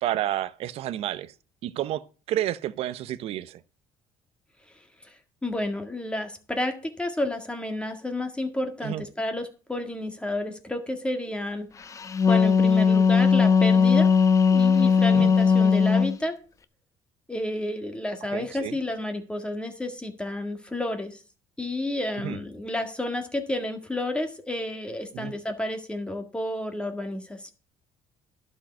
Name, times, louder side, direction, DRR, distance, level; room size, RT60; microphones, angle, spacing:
voice 1, 0.0-1.3 1.6-2.0 2.3-3.6 8.8-9.0 15.1-15.3 18.3-18.8 22.2-22.4 25.1-25.3, right 13 dB, 65° right, 0.8 m, -30 dB
voice 2, 4.7-5.2 5.4-11.7 12.3-14.1 14.5-16.3 17.3-21.2 21.6-27.5, left 1 dB, 10° left, 1.8 m, -31 dB
Wind instrument woodwind instrument, 12.0-16.2, left 6 dB, 30° left, 0.8 m, -19 dB
11.5 x 5.0 x 7.7 m
cardioid pair, 105°, 11 cm